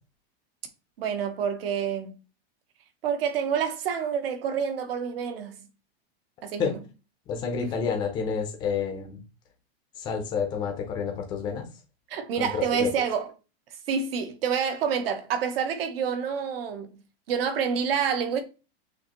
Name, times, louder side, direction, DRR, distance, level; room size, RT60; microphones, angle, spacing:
voice 1, 1.0-2.1 3.0-5.7 6.4-6.8 7.6-7.8 12.1-13.3 13.9-17.0 17.3-18.4, right 7 dB, 65° right, 1.0 m, -28 dB
voice 2, 7.3-9.2 10.0-11.7 12.4-12.9, left 6 dB, 15° left, 0.5 m, -29 dB
6.3 x 2.6 x 2.8 m
supercardioid pair, 180°, 31 cm